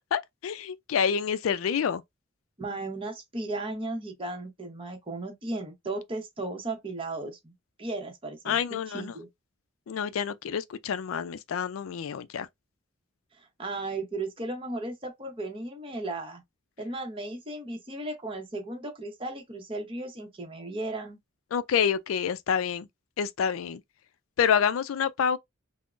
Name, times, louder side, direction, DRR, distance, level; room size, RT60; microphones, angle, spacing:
voice 1, 0.1-2.0 8.5-9.2 9.9-12.5 21.5-22.9 23.2-23.8 24.4-25.4, left 7 dB, 80° left, 0.3 m, -27 dB
voice 2, 2.6-7.5 7.8-9.3 13.4-16.4 16.8-21.2, right 2 dB, 25° right, 0.9 m, -35 dB
3.6 x 2.0 x 2.4 m
head